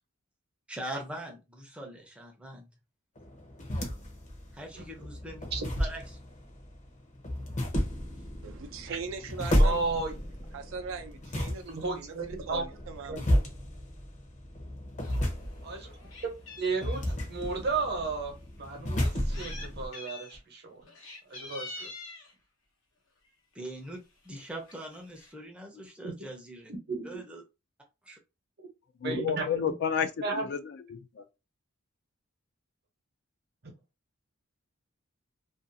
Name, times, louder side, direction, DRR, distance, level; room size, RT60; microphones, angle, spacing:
voice 1, 0.7-2.7 4.5-5.5 5.8-6.0 23.5-26.7 27.0-27.4 28.0-28.2, right 1 dB, 5° right, 0.5 m, -42 dB
sound 1, 3.2-19.9, equal, 35° left, 0.7 m, -32 dB
voice 2, 8.4-9.8 10.5-13.3, right 5 dB, 70° right, 0.5 m, -40 dB
voice 3, 9.6-10.1 11.7-12.6 13.1-13.2 15.6-15.9 16.2-16.3 16.6-20.8 21.3-21.9 26.0-26.1 26.7-27.2 29.0-29.6 30.2-30.5 33.6-33.7, right 4 dB, 55° right, 0.8 m, -33 dB
Meow, 15.0-15.2 15.6-17.3 18.0-18.1 19.0-19.7 19.9-20.4 20.8-22.3 23.3-23.5 23.9-24.0 24.2-24.4 24.7-25.3, left 3 dB, 75° left, 0.9 m, -45 dB
voice 4, 29.0-31.2, left 7 dB, 55° left, 0.3 m, -31 dB
2.5 x 2.3 x 2.6 m
head